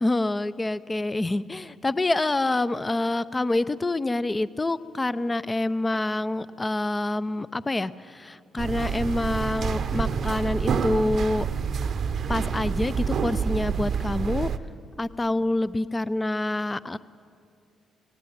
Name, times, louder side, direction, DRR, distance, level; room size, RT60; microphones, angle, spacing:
voice 1, 0.0-11.5 12.3-14.5 15.0-17.0, left 2 dB, 25° left, 16 dB, 0.7 m, -26 dB
sound 1, 8.6-14.6, right 6 dB, 55° right, 0.8 m, -27 dB
17.5 x 17.0 x 8.9 m, 2.3 s
figure-of-eight pair, 40°, 0 cm